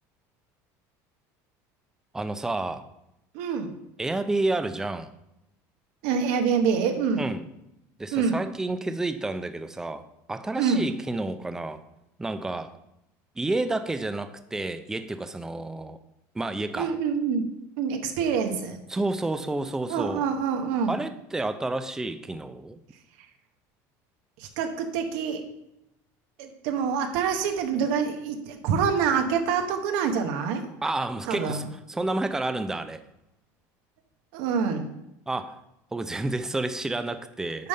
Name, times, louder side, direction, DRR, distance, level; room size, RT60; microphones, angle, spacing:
voice 1, 2.1-2.8 4.0-5.1 7.2-7.4 8.0-11.8 12.2-12.7 13.4-16.0 16.3-16.9 18.9-20.3 20.9-22.8 30.8-31.6 31.9-33.0 35.3-35.6 35.9-37.7, right 2 dB, 5° right, 10 dB, 0.4 m, -30 dB
voice 2, 3.3-3.8 6.0-7.3 8.1-8.4 10.6-10.9 16.7-17.4 17.8-18.8 19.9-21.0 23.2-23.3 24.4-25.4 26.4-30.6 31.2-31.7 34.3-35.0 37.6-37.7, right 6 dB, 75° right, 6 dB, 1.1 m, -26 dB
9.3 x 3.6 x 5.5 m, 0.84 s
cardioid pair, 155°, 8 cm